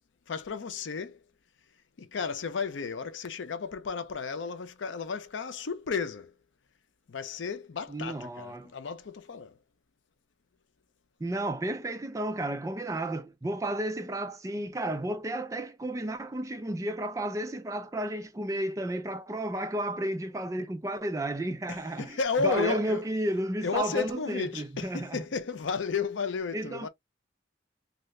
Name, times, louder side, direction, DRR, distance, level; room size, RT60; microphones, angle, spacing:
voice 1, 0.3-1.2 2.0-6.3 7.1-9.6 21.7-23.1 23.6-26.9, left 5 dB, 75° left, 0.5 m, -33 dB
voice 2, 7.9-8.7 11.2-25.2 26.5-26.9, right 1 dB, 15° right, 0.3 m, -32 dB
2.7 x 2.4 x 3.2 m
head